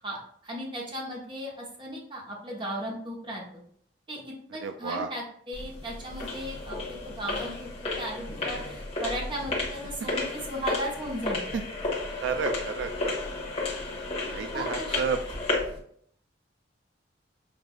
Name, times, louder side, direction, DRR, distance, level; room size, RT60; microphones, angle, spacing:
voice 1, 0.0-3.6 4.1-7.7 8.0-11.4 14.5-15.0, equal, 25° right, -2 dB, 0.9 m, -36 dB
voice 2, 4.6-5.1 10.0-10.1 11.5-11.6 12.2-13.1 14.2-15.2, right 5 dB, 80° right, 7 dB, 0.3 m, -31 dB
sound 1, 5.5-15.8, left 2 dB, 30° left, 1.0 m, -33 dB
5.8 x 2.5 x 2.3 m, 0.62 s
head